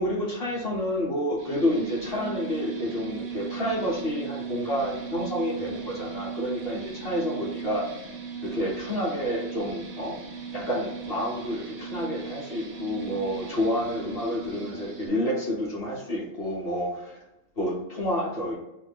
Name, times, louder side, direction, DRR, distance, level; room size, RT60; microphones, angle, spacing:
voice 1, 0.0-7.9 8.4-10.2 10.5-17.2 17.6-18.5, equal, 55° left, -5 dB, 1.1 m, -29 dB
sound 1, 1.4-15.1, right 6 dB, 85° right, 1.0 m, -38 dB
2.7 x 2.5 x 3.3 m, 0.92 s
omnidirectional pair, 1.3 m